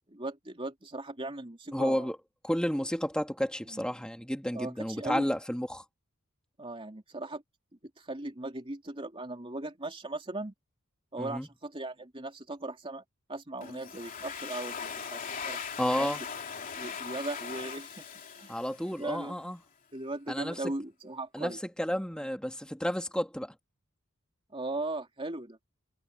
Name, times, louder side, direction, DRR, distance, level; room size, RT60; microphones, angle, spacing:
voice 1, 0.0-2.1 3.7-3.8 4.5-5.3 6.6-7.4 8.0-10.5 11.1-13.0 13.3-15.6 16.0-16.2 16.7-18.0 18.4-18.5 19.0-19.3 19.9-21.6 24.5-25.6, right 2 dB, 25° right, 3.0 m, -38 dB
voice 2, 1.7-2.2 2.4-5.8 11.2-11.5 15.8-16.2 18.5-19.6 20.3-20.6 21.3-23.5, equal, 5° left, 2.4 m, -31 dB
Domestic sounds home sounds, 13.6-19.2, left 6 dB, 40° left, 3.1 m, -40 dB
head